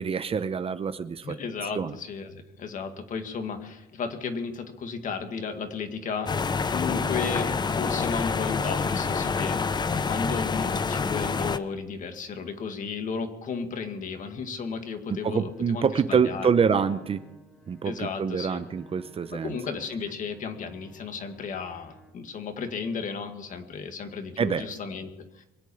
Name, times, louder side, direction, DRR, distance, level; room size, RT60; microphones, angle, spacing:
voice 1, 0.0-1.3 1.8-2.0 15.1-17.3 17.7-19.6 24.4-24.7, right 6 dB, 35° right, 12 dB, 0.8 m, -26 dB
voice 2, 1.2-16.5 17.8-18.6 19.4-25.5, left 5 dB, 50° left, 6 dB, 2.0 m, -34 dB
sound 1, 6.3-11.6, left 5 dB, 25° left, 0.7 m, -27 dB
Bowed string instrument, 15.2-22.3, left 1 dB, 5° left, 1.5 m, -54 dB
23.5 x 8.4 x 7.0 m, 0.98 s
cardioid pair, 110°, 17 cm